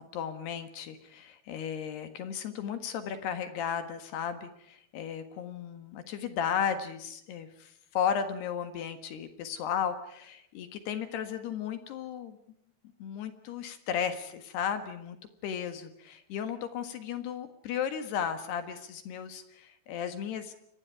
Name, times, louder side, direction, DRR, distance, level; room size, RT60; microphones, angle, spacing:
voice 1, 0.1-12.4 13.0-15.2 15.4-20.5, left 8 dB, 65° left, 9 dB, 3.4 m, -35 dB
28.5 x 23.0 x 4.8 m, 0.73 s
omnidirectional pair, 5.4 m